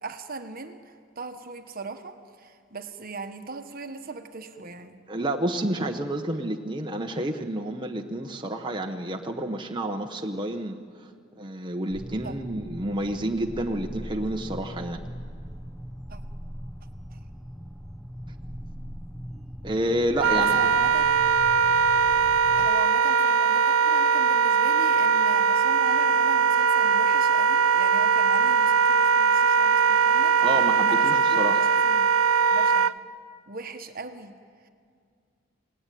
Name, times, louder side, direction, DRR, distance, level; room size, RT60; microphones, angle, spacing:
voice 1, 0.0-5.0 12.2-12.3 16.1-16.2 17.1-17.2 20.4-21.0 22.6-30.5 30.9-32.1 32.5-33.0 33.5-34.4 34.6-34.7, right 3 dB, 45° right, 8 dB, 1.3 m, -39 dB
voice 2, 5.1-11.1 11.4-15.0 19.6-20.7 30.4-31.7, right 1 dB, 20° right, 3 dB, 1.1 m, -29 dB
sound 1, 11.9-22.7, equal, ahead, 0.9 m, -40 dB
Wind instrument woodwind instrument, 20.2-32.9, right 6 dB, 75° right, 0.5 m, -21 dB
28.5 x 18.5 x 9.2 m, 2.2 s
head